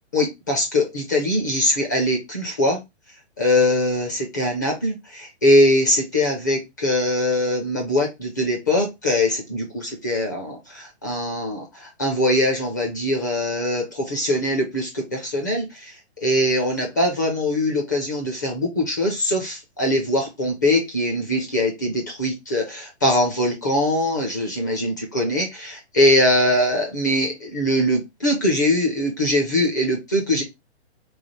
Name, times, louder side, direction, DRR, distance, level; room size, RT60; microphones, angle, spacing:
voice 1, 0.1-2.8 3.4-15.9 16.2-30.4, left 1 dB, 15° left, 0.4 m, -22 dB
3.2 x 2.4 x 4.0 m
hypercardioid pair, 160°, 33 cm